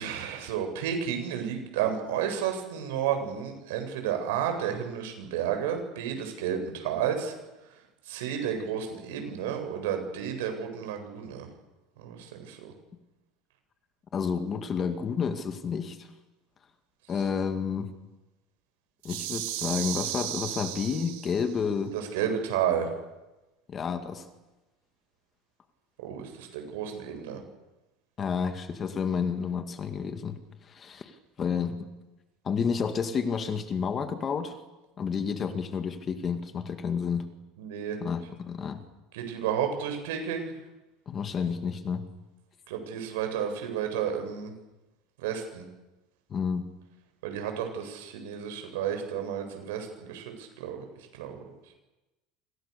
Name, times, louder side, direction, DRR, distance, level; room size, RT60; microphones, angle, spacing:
voice 1, 0.0-7.3 8.1-11.5 12.0-12.7 21.9-22.9 26.0-27.4 37.6-38.0 39.1-40.5 42.7-44.5 45.2-45.6 47.2-50.8 51.1-51.4, right 8 dB, 90° right, 5 dB, 7.6 m, -31 dB
voice 2, 14.1-16.1 17.1-17.9 19.0-22.0 23.7-24.2 28.2-30.4 30.7-31.1 31.4-31.8 32.4-34.6 35.0-37.3 38.0-38.8 41.1-42.0 46.3-46.7, left 6 dB, 20° left, 8 dB, 2.1 m, -30 dB
sound 1, 19.0-21.6, right 14 dB, 70° right, 3.3 m, -35 dB
29.0 x 26.5 x 6.9 m, 1.0 s
cardioid pair, 175°, 0 cm